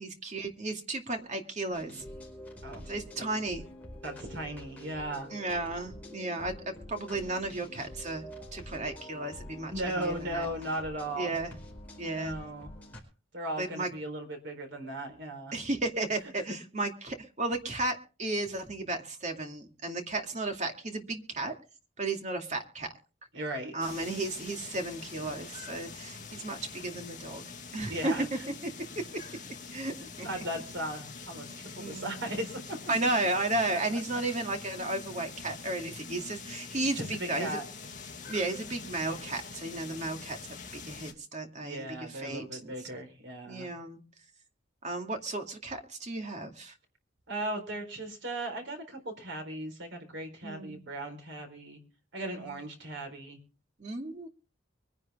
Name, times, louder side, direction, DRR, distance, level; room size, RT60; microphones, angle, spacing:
voice 1, 0.0-2.0 2.9-3.6 5.3-10.5 11.1-11.5 12.0-12.3 13.6-13.9 15.5-21.5 22.0-22.9 23.7-27.4 27.7-28.1 29.7-29.9 30.2-30.4 31.8-32.2 32.9-37.6 38.3-42.7 43.5-44.0 44.8-46.7 50.4-50.8 52.2-52.5 53.8-54.3, right 2 dB, 35° right, 4 dB, 2.3 m, -34 dB
sound 1, 1.7-13.0, equal, 10° left, 4.9 m, -46 dB
voice 2, 4.0-5.3 9.7-11.3 12.0-12.7 13.3-15.5 23.3-23.7 27.9-28.4 30.0-32.6 33.7-34.0 36.9-37.6 41.6-43.7 47.3-51.8 52.1-53.4, right 1 dB, 65° right, 5 dB, 4.2 m, -37 dB
sound 2, 23.8-41.1, left 4 dB, 40° left, 2.2 m, -45 dB
24.0 x 10.5 x 3.6 m, 0.35 s
head